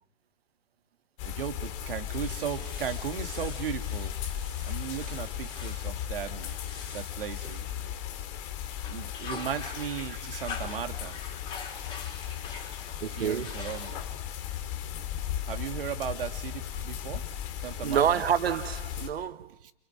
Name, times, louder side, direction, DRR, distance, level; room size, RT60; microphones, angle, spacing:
sound 1, 1.2-19.1, left 10 dB, 30° left, 2.3 m, -36 dB
voice 1, 1.2-4.2 4.6-6.5 6.9-7.6 8.9-11.2 13.1-14.0 15.4-17.2 17.6-18.1 19.6-19.7, right 9 dB, 65° right, 2.6 m, -36 dB
sound 2, 2.1-8.3 8.7-14.3, left 4 dB, 15° left, 4.6 m, -44 dB
voice 2, 13.0-13.6 16.7-16.8 17.6-19.6, right 9 dB, 80° right, 1.2 m, -28 dB
29.5 x 29.0 x 4.8 m
hypercardioid pair, 155°, 30 cm